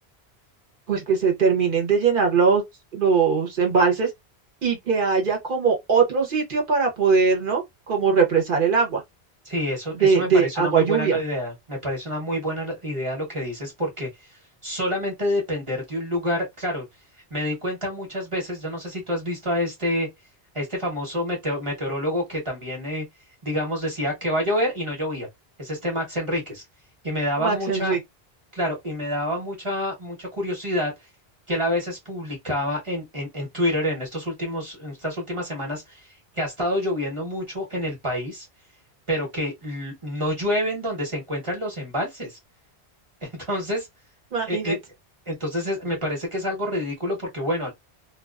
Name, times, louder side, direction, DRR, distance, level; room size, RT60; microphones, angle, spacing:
voice 1, 0.9-2.6 2.9-4.1 4.6-9.0 10.0-11.2 27.4-28.0 44.3-44.8, right 5 dB, 55° right, 1.0 m, -21 dB
voice 2, 9.5-14.3 14.6-16.9 17.3-20.1 20.5-23.0 23.4-25.3 25.6-26.6 27.0-28.0 28.5-30.9 31.5-36.1 36.3-38.5 39.1-42.4 43.2-43.9 44.5-44.8 45.3-47.7, equal, 30° right, 1.0 m, -27 dB
2.4 x 2.3 x 2.3 m
omnidirectional pair, 1.1 m